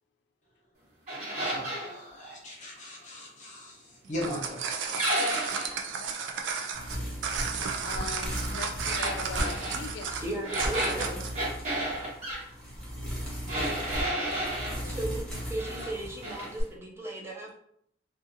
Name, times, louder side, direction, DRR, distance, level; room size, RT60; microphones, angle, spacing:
sound 1, 1.1-1.9 5.0-5.8 8.9-9.8 10.4-12.4 13.5-14.8 15.3-15.9 16.2-16.5, right 1 dB, 40° right, 1.2 m, -32 dB
voice 1, 1.4-4.6, left 1 dB, 40° left, -3 dB, 0.8 m, -39 dB
sound 2, 4.0-11.4, right 6 dB, 70° right, 0.4 m, -33 dB
voice 2, 5.8-6.2 6.8-7.2 7.8-10.2 14.5-15.0, left 4 dB, 60° left, 7 dB, 0.3 m, -41 dB
sound 3, 6.7-16.6, equal, 5° left, 0.9 m, -37 dB
voice 3, 10.2-11.3 14.9-17.5, right 1 dB, 15° right, -3 dB, 0.5 m, -36 dB
2.5 x 2.4 x 2.6 m, 0.70 s
head